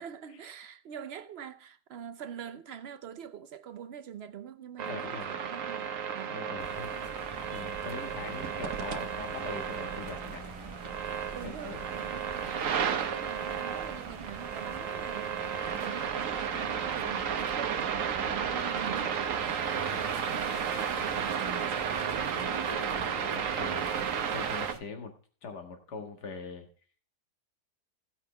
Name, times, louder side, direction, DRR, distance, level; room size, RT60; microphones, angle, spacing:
voice 1, 0.0-6.4 7.9-8.1 11.3-15.4 15.8-22.2 24.1-24.4, right 8 dB, 75° right, 0.5 m, -44 dB
sound 1, 4.8-24.7, right 7 dB, 55° right, 1.1 m, -33 dB
voice 2, 4.9-5.3 6.2-10.5 11.4-11.8 22.8-25.1 25.4-26.7, left 4 dB, 70° left, 2.2 m, -43 dB
Middle School Exterior Ambience (Nighttime), 6.6-24.8, right 3 dB, 30° right, 0.6 m, -43 dB
15.5 x 5.6 x 5.4 m
omnidirectional pair, 1.8 m